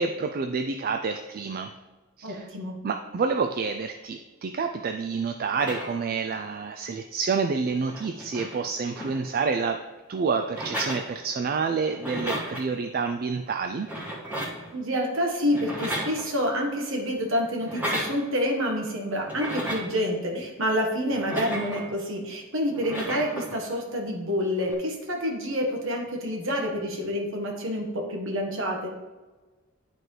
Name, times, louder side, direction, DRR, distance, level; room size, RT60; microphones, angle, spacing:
voice 1, 0.0-1.7 2.2-2.5 2.8-13.9, right 5 dB, 45° right, 6 dB, 0.3 m, -28 dB
voice 2, 2.2-2.8 14.7-28.9, equal, 65° right, 1 dB, 1.5 m, -28 dB
sound 1, 5.5-6.2 7.3-7.4 7.6-9.6 10.5-11.5 11.8-12.7 13.7-14.7 15.5-16.6 17.6-18.2 19.2-20.0 21.1-22.0 22.7-23.6 24.6-24.7, right 1 dB, 10° right, 1.7 m, -34 dB
11.0 x 4.5 x 3.3 m, 1.2 s
head